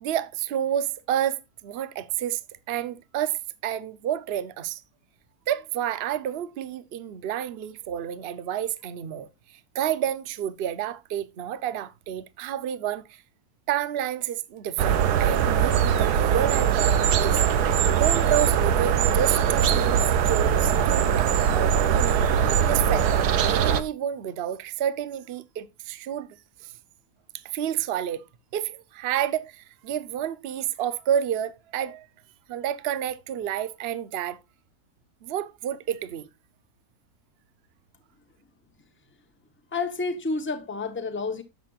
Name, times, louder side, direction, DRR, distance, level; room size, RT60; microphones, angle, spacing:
voice 1, 0.0-2.4 2.7-4.8 5.5-13.2 13.7-17.4 18.0-26.7 27.3-28.2 28.5-32.1 32.5-34.4 35.2-36.3, right 10 dB, 50° right, 0.8 m, -30 dB
sound 1, 14.8-23.8, right 8 dB, 75° right, 1.3 m, -21 dB
voice 2, 39.7-41.4, left 3 dB, 10° left, 0.8 m, -29 dB
11.0 x 7.5 x 2.4 m
omnidirectional pair, 1.7 m